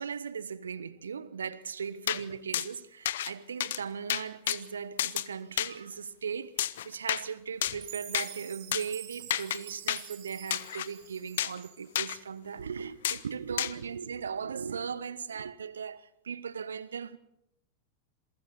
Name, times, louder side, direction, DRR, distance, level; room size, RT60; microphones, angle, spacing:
voice 1, 0.0-17.2, right 6 dB, 70° right, 0.9 m, -38 dB
sound 1, 2.1-2.2 2.5-2.7 3.1-3.3 3.6-3.8 4.1-4.6 5.0-5.3 5.6-5.7 6.6-7.2 7.6-7.8 8.1-8.3 8.7-8.8 9.3-9.6 9.9-10.0 10.5-10.9 11.4-11.6 12.0-12.2 13.0-13.2 13.6-13.7, left 12 dB, 60° left, 0.7 m, -30 dB
Chime, 7.8-12.0, right 13 dB, 45° right, 4.4 m, -46 dB
27.5 x 23.0 x 4.4 m
figure-of-eight pair, 90°, 0 cm